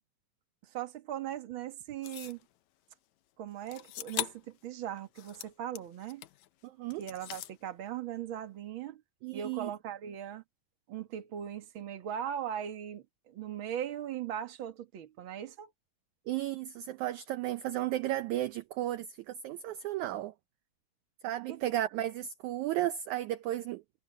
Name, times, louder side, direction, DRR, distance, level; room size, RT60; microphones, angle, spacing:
voice 1, 0.7-2.4 3.4-6.3 7.0-9.0 9.3-10.4 10.9-15.7 21.5-21.6, right 10 dB, 45° right, 1.8 m, -39 dB
sound 1, 2.0-2.4 3.7-4.5 5.0-6.5 6.9-7.6, left 14 dB, 75° left, 1.7 m, -40 dB
voice 2, 6.6-7.0 9.2-9.7 16.3-20.3 21.2-23.8, right 13 dB, 75° right, 1.8 m, -34 dB
omnidirectional pair, 4.1 m